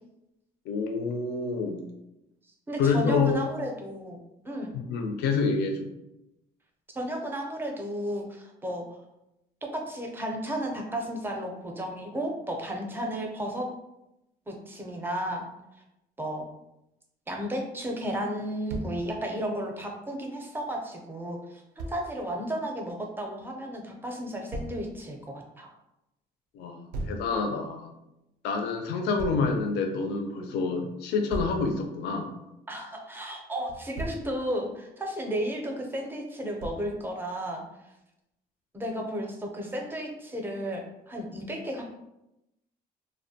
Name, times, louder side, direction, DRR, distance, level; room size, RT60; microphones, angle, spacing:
voice 1, 0.7-1.9 2.8-3.4 4.7-5.9 26.5-27.9 28.4-32.3, left 4 dB, 75° left, 4 dB, 0.4 m, -27 dB
voice 2, 2.7-4.2 4.4-4.7 6.9-8.8 9.6-13.7 14.5-15.4 16.2-16.4 17.3-25.7 32.7-37.6 38.7-41.8, equal, 10° right, 1 dB, 0.5 m, -33 dB
Thump thud, 18.7-19.0 21.8-22.0 24.5-24.8 26.9-27.2 29.2-29.5 31.3-31.6 33.7-34.3 36.6-36.9, right 2 dB, 90° right, 0.4 m, -35 dB
2.4 x 2.1 x 2.7 m, 0.89 s
cardioid pair, 110°, 17 cm